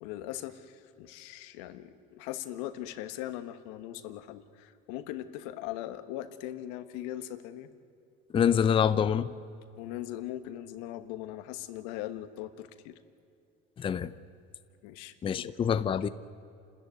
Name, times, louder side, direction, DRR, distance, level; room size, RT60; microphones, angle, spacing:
voice 1, 0.0-7.7 9.8-13.0 14.8-15.5, left 13 dB, 85° left, 1.4 m, -40 dB
voice 2, 8.3-9.3 13.8-14.1 15.2-16.1, left 8 dB, 25° left, 0.6 m, -26 dB
29.0 x 13.5 x 9.4 m
cardioid pair, 125°, 20 cm